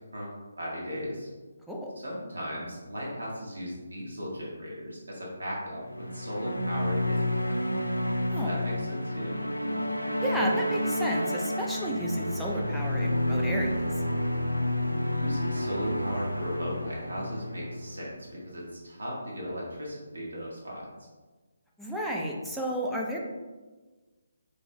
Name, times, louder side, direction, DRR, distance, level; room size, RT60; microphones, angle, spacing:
voice 1, 0.1-1.3 2.0-7.6 8.4-9.3 15.1-20.9, equal, 70° right, -4 dB, 1.3 m, -37 dB
sound 1, 5.9-18.3, left 1 dB, 90° left, 0.4 m, -30 dB
voice 2, 10.2-13.9 21.8-23.2, equal, ahead, -4 dB, 0.4 m, -32 dB
3.5 x 3.0 x 3.1 m, 1.3 s
figure-of-eight pair, 145°, 0 cm